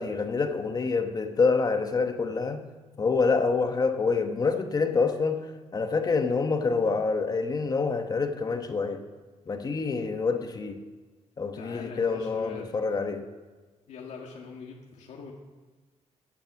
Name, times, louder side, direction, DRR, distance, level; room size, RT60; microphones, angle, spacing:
voice 1, 0.0-2.6 3.0-5.4 5.7-9.0 9.5-10.8 11.4-13.2, left 4 dB, 30° left, 7 dB, 1.0 m, -26 dB
voice 2, 11.5-12.7 13.9-15.3, left 5 dB, 85° left, -1 dB, 1.6 m, -43 dB
14.5 x 8.9 x 6.1 m, 1.3 s
cardioid pair, 130°, 12 cm